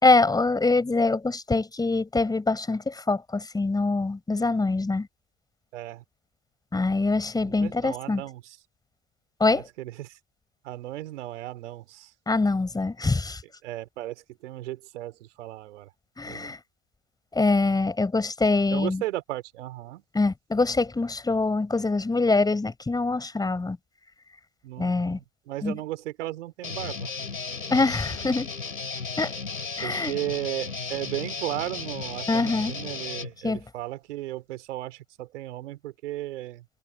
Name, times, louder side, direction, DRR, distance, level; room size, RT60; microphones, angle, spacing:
voice 1, 0.0-5.1 6.7-8.2 9.4-9.7 12.3-13.4 16.2-16.6 17.3-19.0 20.1-23.8 24.8-25.2 25.6-25.8 27.7-28.5 29.2-29.4 29.8-30.1 32.3-32.7 33.4-33.6, left 3 dB, 10° left, 4.2 m, -24 dB
voice 2, 5.7-6.0 7.4-8.6 9.5-10.2 10.6-12.1 13.0-13.2 13.6-15.9 16.2-16.5 18.7-20.0 24.6-27.1 29.8-36.7, right 15 dB, 60° right, 3.7 m, -35 dB
Guitar, 26.6-33.3, left 5 dB, 85° left, 4.1 m, -35 dB
figure-of-eight pair, 95°, 40 cm